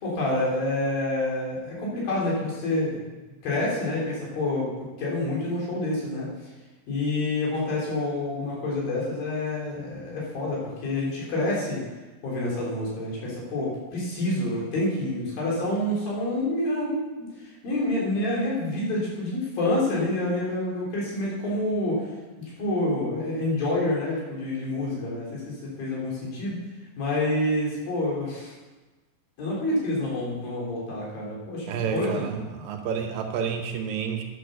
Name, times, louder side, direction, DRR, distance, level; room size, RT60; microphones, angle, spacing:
voice 1, 0.0-3.0 3.4-6.3 6.9-11.8 12.2-22.0 22.6-26.6 27.0-28.5 29.4-32.3, left 1 dB, 80° left, -5 dB, 5.2 m, -28 dB
voice 2, 31.7-34.2, right 7 dB, 80° right, 3 dB, 2.8 m, -30 dB
11.0 x 7.4 x 6.6 m, 1.2 s
omnidirectional pair, 4.1 m